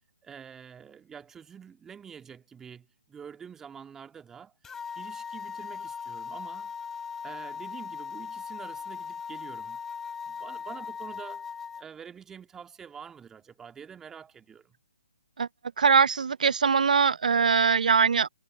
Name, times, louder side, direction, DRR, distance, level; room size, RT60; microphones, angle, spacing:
voice 1, 0.2-6.7 7.2-9.8 10.3-11.5 11.8-14.8, right 7 dB, 10° right, 2.0 m, -47 dB
sound 1, 4.6-11.8, left 6 dB, 10° left, 2.8 m, -39 dB
voice 2, 15.8-18.3, right 6 dB, 65° right, 0.7 m, -22 dB
figure-of-eight pair, 145°, 5 cm